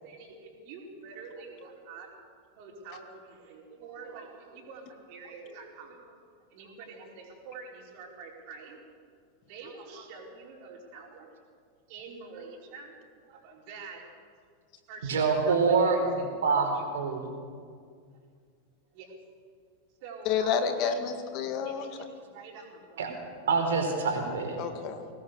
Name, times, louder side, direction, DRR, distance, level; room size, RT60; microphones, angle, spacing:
voice 1, 0.0-2.1 2.5-6.2 6.5-8.8 9.5-11.4 11.9-13.0 13.3-14.1 14.9-16.8 17.9-18.1 18.9-19.2 20.0-20.9 21.6-23.1, right 4 dB, 45° right, 0 dB, 5.0 m, -46 dB
voice 2, 15.0-17.3 23.0-23.1 23.5-24.6, right 4 dB, 60° right, 3 dB, 4.6 m, -26 dB
voice 3, 20.3-21.8 24.6-25.1, left 7 dB, 40° left, 7 dB, 1.9 m, -29 dB
23.0 x 18.5 x 6.9 m, 2.1 s
figure-of-eight pair, 90°, 0 cm